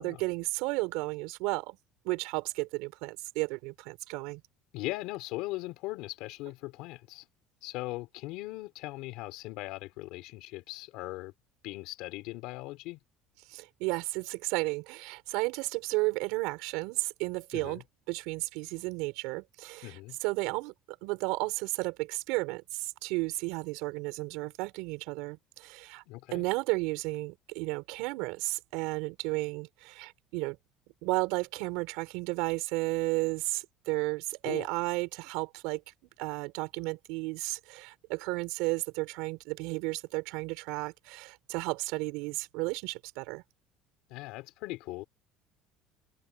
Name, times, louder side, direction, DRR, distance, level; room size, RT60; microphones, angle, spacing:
voice 1, 0.0-1.8 2.0-4.4 13.5-20.7 21.0-26.0 26.3-30.6 31.0-35.8 36.2-43.4, right 24 dB, 75° right, 5.1 m, -33 dB
voice 2, 4.7-7.3 7.6-11.3 11.6-13.0 17.5-17.8 19.8-20.2 26.1-26.5 34.4-34.7 44.1-45.0, left 19 dB, 65° left, 4.2 m, -39 dB
cardioid pair, 170°, 0 cm